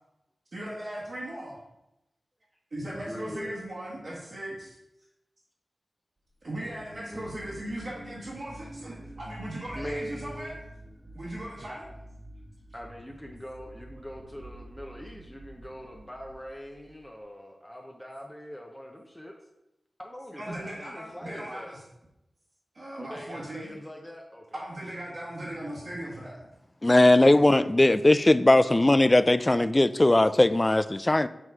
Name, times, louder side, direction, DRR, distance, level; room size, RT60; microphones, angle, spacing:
voice 1, 0.5-1.6 2.7-4.8 6.4-10.5 11.1-11.9 20.4-21.8 22.7-23.7 24.5-26.4, right 1 dB, 65° right, 1.7 m, -38 dB
voice 2, 2.8-3.6 6.6-7.3 9.8-10.6 11.6-11.9 12.7-19.3 20.0-21.7 23.0-24.6 27.8-27.9, equal, 10° left, 0.7 m, -42 dB
sound 1, 6.6-17.1, right 1 dB, 25° right, 1.3 m, -47 dB
voice 3, 26.8-31.3, left 1 dB, 25° left, 0.3 m, -19 dB
7.7 x 3.1 x 4.7 m
wide cardioid pair, 60°, 0 cm